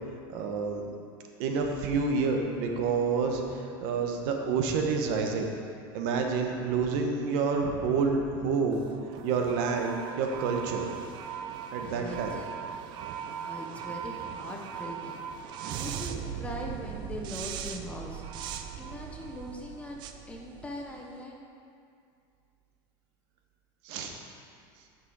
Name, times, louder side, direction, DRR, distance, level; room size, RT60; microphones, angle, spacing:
voice 1, 0.3-0.8 1.4-5.5 5.9-8.9 9.2-10.9 11.7-12.3 23.8-24.1, right 5 dB, 55° right, 3 dB, 1.0 m, -28 dB
sound 1, 8.7-21.1, right 8 dB, 40° right, 0.5 m, -39 dB
voice 2, 11.7-12.5 13.2-15.2 15.8-21.4, left 1 dB, 10° left, -1 dB, 0.7 m, -41 dB
8.9 x 6.1 x 4.7 m, 2.4 s
cardioid pair, 165°, 12 cm